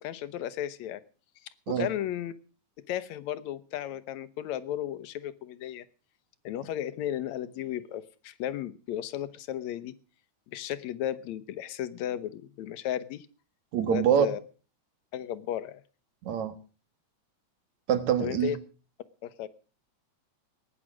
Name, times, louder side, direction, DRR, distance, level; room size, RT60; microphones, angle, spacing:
voice 1, 0.0-1.0 1.7-2.3 2.9-5.8 6.4-10.0 10.5-13.3 13.9-14.4 15.1-15.8 18.2-18.6 19.2-19.5, left 11 dB, 75° left, 14 dB, 2.2 m, -34 dB
voice 2, 13.7-14.3 16.2-16.6 17.9-18.6, right 9 dB, 75° right, 10 dB, 2.9 m, -25 dB
18.5 x 10.0 x 6.2 m, 0.38 s
omnidirectional pair, 3.3 m